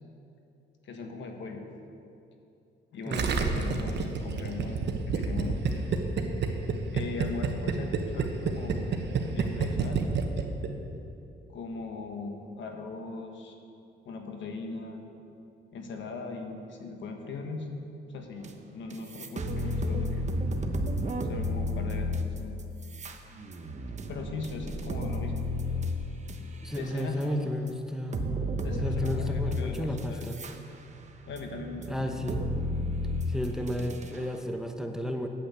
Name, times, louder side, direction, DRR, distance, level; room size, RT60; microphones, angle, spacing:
voice 1, 0.8-1.6 2.9-5.9 6.9-10.0 11.5-13.6 14.0-15.0 15.7-17.7 18.1-20.3 21.3-22.6 24.1-25.4 26.4-27.4 28.6-30.3 31.3-32.2, left 3 dB, 70° left, 3 dB, 1.4 m, -39 dB
voice 2, 3.1-3.6 26.6-28.3 28.8-30.4 31.9-32.4 33.3-35.3, left 1 dB, 5° right, 4 dB, 0.9 m, -33 dB
Gurgling, 3.1-11.0, right 5 dB, 60° right, 1.1 m, -28 dB
sound 1, 18.4-18.5 18.9-27.2 27.7-27.8 28.1-30.5 30.9-34.2, left 1 dB, 35° right, 1.0 m, -32 dB
8.8 x 7.9 x 8.1 m, 2.7 s
cardioid pair, 90°, 20 cm